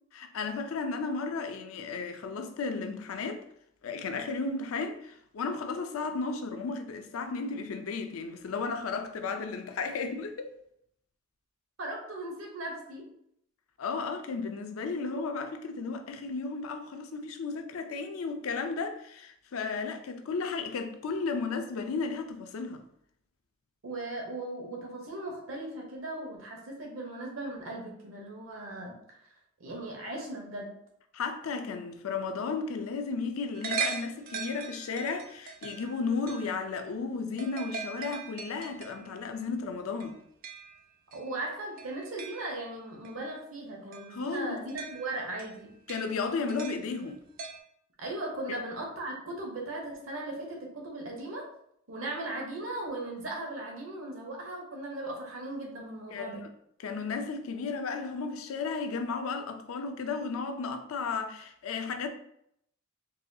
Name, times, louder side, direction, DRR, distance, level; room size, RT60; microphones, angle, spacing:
voice 1, 0.1-3.4 3.8-10.5 13.8-22.8 31.1-40.2 44.1-44.6 45.9-47.2 48.5-48.6 56.1-56.5 56.8-62.1, left 4 dB, 85° left, 0.4 m, -34 dB
voice 2, 11.8-13.1 23.8-29.0 29.6-30.8 41.1-45.7 48.0-51.5 51.9-56.4, right 2 dB, 75° right, 0.9 m, -38 dB
sound 1, 33.5-36.7 37.4-39.0 40.0-40.8 41.1-42.6 43.0-43.1 43.9-44.2 44.7-47.1 47.4-47.6, right 5 dB, 45° right, 0.4 m, -39 dB
4.0 x 2.3 x 2.7 m
head